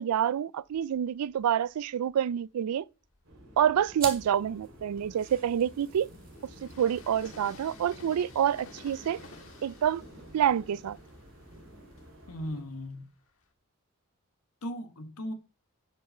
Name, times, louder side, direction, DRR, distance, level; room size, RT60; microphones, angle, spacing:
voice 1, 0.0-2.8 3.6-6.1 6.6-9.2 9.6-10.0 10.3-11.0, right 9 dB, 85° right, 0.3 m, -27 dB
Train, 0.6-2.3 2.9-13.5, left 3 dB, 65° left, 1.6 m, -55 dB
sound 1, 3.2-12.6, equal, 65° right, 3.1 m, -51 dB
sound 2, 3.9-12.9, right 6 dB, 40° right, 2.3 m, -48 dB
voice 2, 12.3-13.1 14.6-15.3, left 1 dB, 85° left, 1.4 m, -37 dB
9.6 x 5.5 x 5.5 m
head